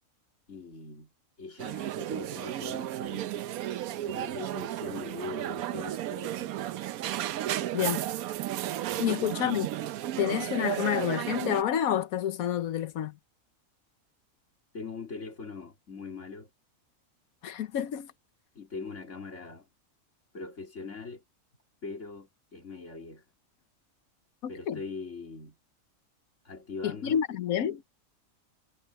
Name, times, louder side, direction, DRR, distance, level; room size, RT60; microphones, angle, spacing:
voice 1, 0.5-1.1 1.4-3.3 4.0-6.5 8.9-9.3 14.7-16.5 18.5-19.7 20.3-21.2 21.8-23.2 24.5-25.6 26.4-27.2, left 4 dB, 60° left, 3.5 m, -41 dB
sound 1, 1.6-11.6, right 13 dB, 85° right, 1.1 m, -33 dB
voice 2, 7.7-8.1 9.0-9.7 10.2-13.1 17.4-18.1 24.4-24.8 26.8-27.8, left 10 dB, 90° left, 1.3 m, -29 dB
omnidirectional pair, 1.5 m